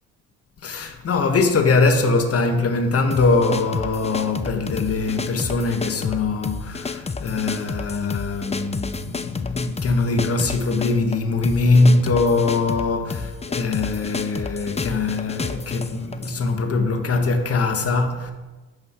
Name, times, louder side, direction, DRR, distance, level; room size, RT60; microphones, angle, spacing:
voice 1, 0.6-18.3, left 3 dB, 50° left, 2.0 m, -22 dB
sound 1, 3.1-16.4, left 4 dB, 20° left, 0.8 m, -31 dB
13.0 x 10.5 x 4.9 m
cardioid pair, 90°, 30 cm